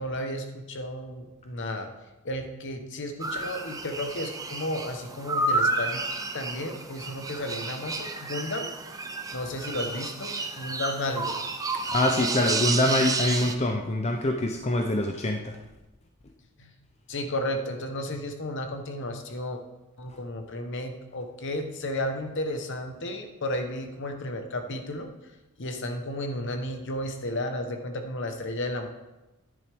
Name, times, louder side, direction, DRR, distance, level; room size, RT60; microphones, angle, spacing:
voice 1, 0.0-1.9 2.2-6.0 6.3-8.7 9.3-11.4 12.2-12.3 16.6-16.7 17.1-19.6 20.0-25.1 25.6-28.9, left 1 dB, 55° left, 6 dB, 1.1 m, -33 dB
sound 1, 3.2-13.6, right 3 dB, 15° right, 0.6 m, -31 dB
voice 2, 11.8-15.5, left 1 dB, 30° left, 3 dB, 0.6 m, -25 dB
10.5 x 10.0 x 3.5 m, 1.0 s
head